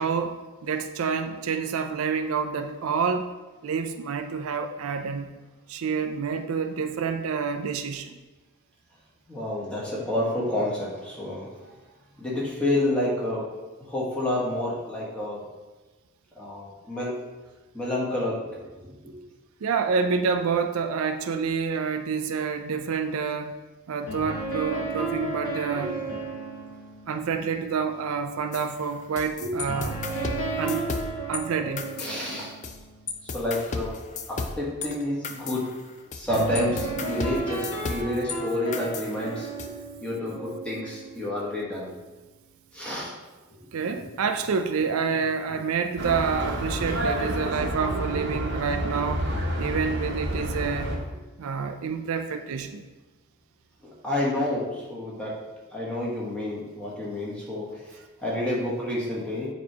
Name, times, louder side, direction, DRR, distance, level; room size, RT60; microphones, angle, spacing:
voice 1, 0.0-3.3 3.6-5.3 5.7-8.2 19.6-23.5 23.9-25.9 27.1-29.9 30.6-30.9 31.3-31.9 43.7-49.2 49.6-50.9 51.4-52.8, right 5 dB, 75° right, 7 dB, 0.4 m, -28 dB
voice 2, 9.3-11.7 12.2-13.5 13.9-15.4 16.4-17.2 17.7-18.4 18.7-19.1 25.7-25.8 29.4-29.5 32.0-32.5 33.2-34.0 34.3-35.7 36.1-39.7 40.0-41.9 42.7-43.1 45.1-45.2 54.0-55.4 55.7-59.5, left 1 dB, 5° left, -6 dB, 1.3 m, -29 dB
sound 1, 24.1-28.9 29.7-33.4 36.3-41.8, right 3 dB, 75° left, 1.4 m, -34 dB
sound 2, 28.5-31.4 31.8-32.8 33.1-38.4 38.7-39.7, left 4 dB, 35° left, 0.4 m, -35 dB
sound 3, 46.0-51.0, right 1 dB, 50° right, 0.9 m, -29 dB
7.1 x 3.1 x 4.7 m, 1.2 s
head